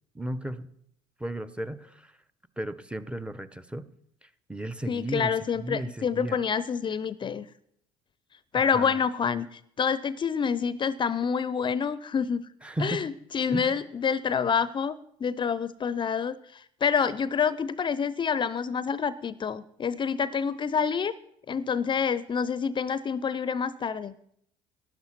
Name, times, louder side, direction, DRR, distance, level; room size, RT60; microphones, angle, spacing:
voice 1, 0.1-0.7 1.2-2.1 2.6-3.9 4.2-6.4 8.5-9.0 12.6-13.1 13.5-13.7, right 1 dB, 10° right, 15 dB, 0.8 m, -35 dB
voice 2, 4.9-7.5 8.5-12.5 12.8-21.1 21.5-24.1, left 6 dB, 35° left, 17 dB, 0.6 m, -27 dB
12.0 x 11.0 x 5.9 m, 0.69 s
hypercardioid pair, 70°, 14 cm